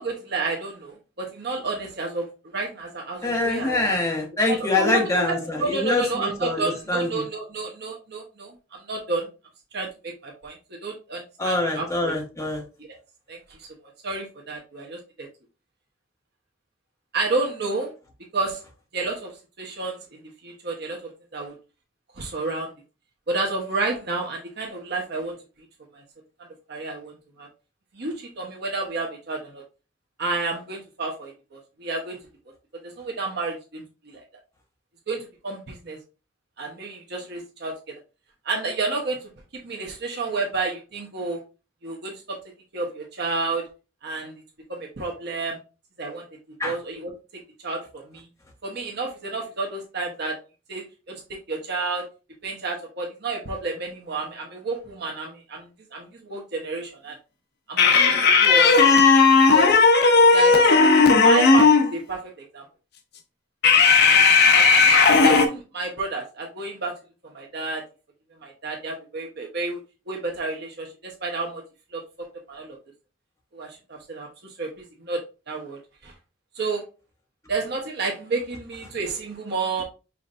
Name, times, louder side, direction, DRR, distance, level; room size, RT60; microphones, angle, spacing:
voice 1, 0.0-4.0 4.5-9.3 9.7-12.1 12.9-13.0 13.3-13.7 14.0-15.3 17.1-17.9 18.3-18.6 18.9-21.6 22.1-22.7 23.3-25.4 25.9-26.0 26.7-27.1 27.4-27.5 27.9-29.6 30.2-32.2 32.8-34.2 35.1-36.0 36.6-37.8 38.4-39.3 39.6-41.4 41.8-42.4 42.7-43.7 44.0-44.3 44.7-45.6 46.0-46.2 46.6-47.1 47.6-48.3 48.6-50.4 50.7-51.2 51.5-52.1 52.4-57.2 57.7-58.8 59.5-59.8 60.3-62.6 64.0-64.2 64.5-66.9 67.2-67.8 68.4-69.8 70.1-71.6 71.9-72.0 72.5-72.8 73.5-76.1 76.5-76.8 77.5-79.8, right 3 dB, 60° right, 0 dB, 1.1 m, -30 dB
voice 2, 3.2-6.6 6.9-7.1 11.4-12.6 46.6-46.8, left 2 dB, 15° left, 0 dB, 1.3 m, -24 dB
sound 1, 57.8-61.9 63.6-65.5, left 4 dB, 60° left, 0.7 m, -15 dB
5.7 x 3.2 x 2.6 m, 0.31 s
head